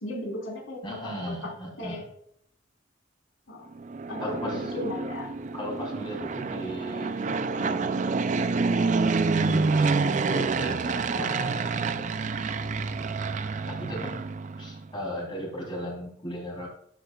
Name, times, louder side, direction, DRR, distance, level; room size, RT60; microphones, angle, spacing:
voice 1, 0.0-0.8 1.8-2.0 3.5-3.7 4.1-5.3, left 1 dB, 80° left, -1 dB, 3.8 m, -35 dB
voice 2, 0.8-2.0 4.2-4.7 5.5-8.3 9.4-12.3 13.7-14.2 14.6-16.7, equal, 25° left, -1 dB, 3.2 m, -37 dB
Fixed-wing aircraft airplane, 3.8-14.9, right 4 dB, 40° right, 0.4 m, -28 dB
12.0 x 8.2 x 2.3 m, 0.71 s
head